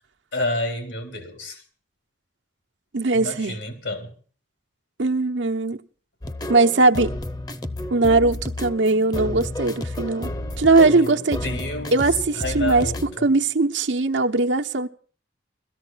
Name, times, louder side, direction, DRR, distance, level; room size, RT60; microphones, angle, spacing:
voice 1, 0.3-1.6 3.1-4.1 10.9-11.9 12.4-13.3, left 1 dB, 90° left, 3.8 m, -30 dB
voice 2, 2.9-3.6 5.0-5.8 6.5-7.2 7.9-10.3 10.6-11.5 11.9-14.9, right 3 dB, 90° right, 1.1 m, -20 dB
sound 1, 6.2-13.2, left 1 dB, 20° left, 0.7 m, -31 dB
17.5 x 14.0 x 5.7 m
head